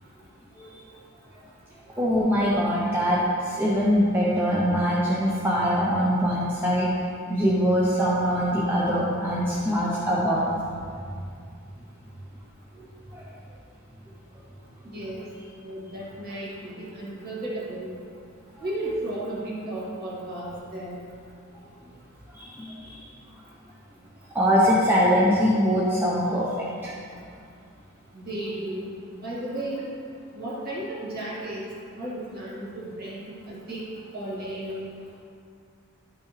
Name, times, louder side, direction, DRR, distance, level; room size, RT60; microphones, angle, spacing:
voice 1, 2.0-6.9 7.3-10.5 12.8-12.9 13.1-13.3 22.3-23.0 24.3-26.9, equal, 10° right, -7 dB, 0.7 m, -23 dB
voice 2, 14.8-15.2 15.6-17.9 18.6-21.0 28.1-30.0 30.4-31.6 31.9-33.8 34.1-34.9, right 1 dB, 45° right, -7 dB, 2.1 m, -34 dB
11.5 x 6.0 x 3.3 m, 2.3 s
head